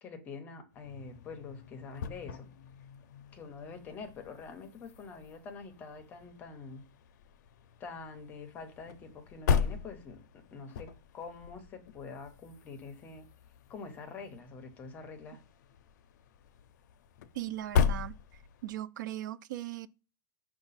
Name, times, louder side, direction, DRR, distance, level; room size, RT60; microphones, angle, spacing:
voice 1, 0.0-2.5 3.3-6.8 7.8-13.3 13.7-15.4, left 4 dB, 15° left, 0.6 m, -46 dB
sound 1, 0.7-18.8, left 7 dB, 70° left, 0.4 m, -38 dB
voice 2, 17.3-18.2 18.6-19.9, right 13 dB, 80° right, 0.4 m, -38 dB
5.2 x 2.3 x 4.0 m
supercardioid pair, 180°, 10 cm